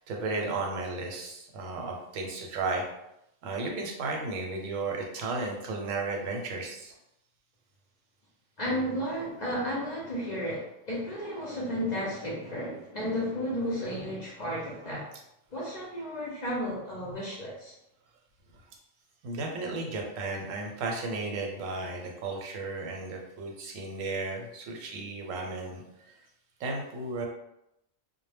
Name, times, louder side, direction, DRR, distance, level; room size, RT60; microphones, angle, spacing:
voice 1, 0.0-2.8 3.4-6.9 19.2-25.8 26.6-27.3, right 3 dB, 90° right, 0 dB, 1.0 m, -34 dB
voice 2, 8.6-15.1 15.5-17.7, equal, 50° left, -5 dB, 0.5 m, -33 dB
2.1 x 2.1 x 3.2 m, 0.84 s
omnidirectional pair, 1.3 m